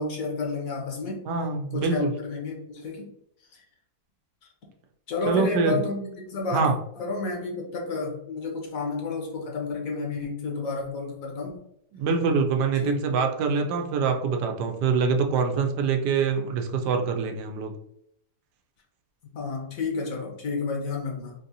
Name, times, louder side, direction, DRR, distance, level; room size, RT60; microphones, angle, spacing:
voice 1, 0.0-1.2 1.7-3.1 3.5-3.6 5.1-6.7 7.0-11.5 12.8-12.9 19.3-21.3, left 4 dB, 60° left, 0 dB, 1.1 m, -31 dB
voice 2, 1.3-2.1 5.3-5.7 6.5-6.7 12.0-17.7, right 5 dB, 85° right, 4 dB, 1.2 m, -24 dB
3.7 x 2.6 x 2.7 m, 0.74 s
omnidirectional pair, 1.8 m